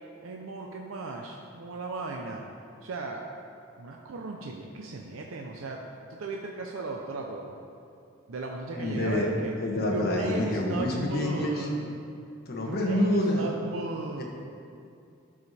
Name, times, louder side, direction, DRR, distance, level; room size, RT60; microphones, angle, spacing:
voice 1, 0.2-2.5 2.8-3.3 3.8-5.8 6.1-7.6 8.3-9.5 9.9-12.0 12.7-14.2, right 3 dB, 85° right, 1 dB, 0.6 m, -36 dB
voice 2, 8.7-9.3 9.6-11.7 12.5-13.5 14.2-14.3, left 1 dB, 50° left, -1 dB, 1.3 m, -27 dB
12.5 x 5.0 x 4.2 m, 2.5 s
head